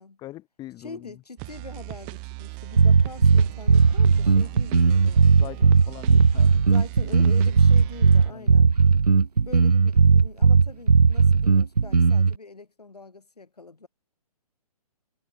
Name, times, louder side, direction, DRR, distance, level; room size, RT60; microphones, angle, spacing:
voice 1, 0.2-1.2 4.2-4.6 5.4-6.6 8.3-8.8, left 15 dB, 20° left, 6.5 m, -43 dB
voice 2, 0.8-5.7 6.7-8.7 9.4-13.9, left 3 dB, 80° left, 4.2 m, -43 dB
sound 1, 1.4-8.3, right 36 dB, 25° right, 2.3 m, -38 dB
sound 2, 2.8-12.3, right 5 dB, 80° right, 0.8 m, -17 dB
figure-of-eight pair, 130°, 20 cm